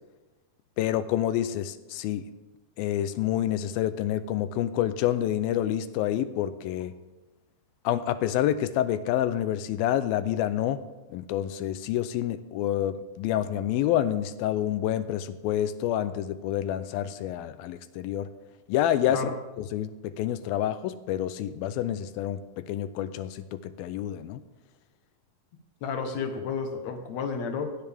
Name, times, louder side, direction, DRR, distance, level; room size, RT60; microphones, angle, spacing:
voice 1, 0.8-2.3 2.8-6.9 7.8-18.3 18.7-19.3 19.6-24.4, left 11 dB, 85° left, 13 dB, 2.4 m, -28 dB
voice 2, 25.8-27.8, left 5 dB, 60° left, 5 dB, 2.0 m, -31 dB
16.5 x 9.8 x 3.5 m, 1.1 s
omnidirectional pair, 4.2 m